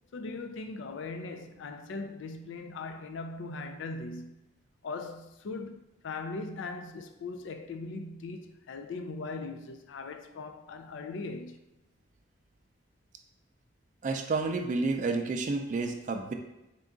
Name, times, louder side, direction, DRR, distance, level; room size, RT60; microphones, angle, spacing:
voice 1, 0.1-4.4 4.8-11.6, left 3 dB, 75° left, 0.4 m, -39 dB
voice 2, 14.0-16.3, right 3 dB, 40° right, 0.3 m, -30 dB
3.7 x 2.3 x 3.7 m
head